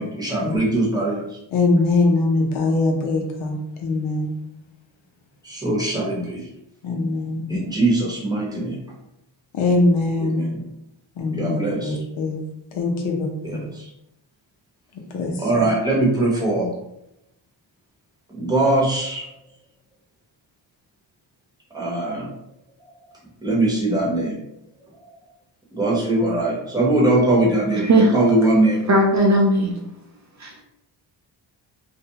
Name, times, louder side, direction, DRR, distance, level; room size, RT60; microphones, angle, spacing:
voice 1, 0.0-1.4 5.4-6.4 7.5-8.8 10.2-10.6 11.3-12.0 13.4-13.9 15.4-16.7 18.3-19.3 21.7-22.3 23.4-24.4 25.7-28.8, right 2 dB, 10° right, -5 dB, 0.9 m, -21 dB
voice 2, 1.5-4.3 6.8-7.6 9.5-10.5 11.2-12.4 12.7-13.6 15.1-15.6, left 2 dB, 75° left, 1 dB, 0.7 m, -22 dB
voice 3, 27.7-28.2 28.9-29.8 30.4-30.5, right 1 dB, 40° right, 0 dB, 0.5 m, -17 dB
2.4 x 2.1 x 2.8 m, 0.82 s
cardioid pair, 85°, 47 cm